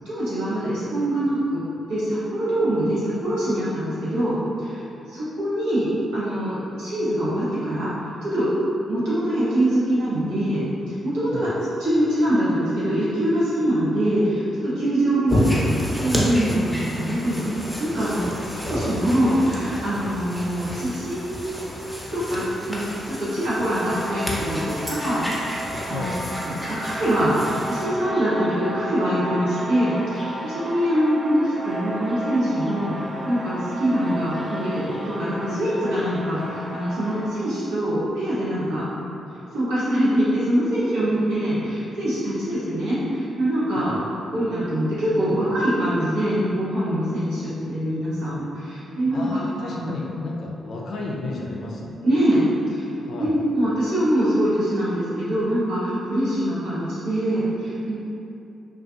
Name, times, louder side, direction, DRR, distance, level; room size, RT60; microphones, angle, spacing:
voice 1, 0.0-1.6 1.9-8.5 8.9-11.5 11.8-21.7 22.1-26.1 26.4-27.4 27.7-38.8 39.5-44.0 44.3-50.0 52.0-52.9 53.2-58.0, equal, 80° right, -11 dB, 0.8 m, -24 dB
sound 1, 15.3-27.8, equal, 10° left, 0.6 m, -30 dB
sound 2, 23.7-37.3, right 1 dB, 30° right, 0.4 m, -33 dB
voice 2, 49.1-52.0 53.0-53.3, left 2 dB, 65° left, -2 dB, 0.4 m, -32 dB
2.4 x 2.3 x 2.5 m, 2.8 s
hypercardioid pair, 40°, 0 cm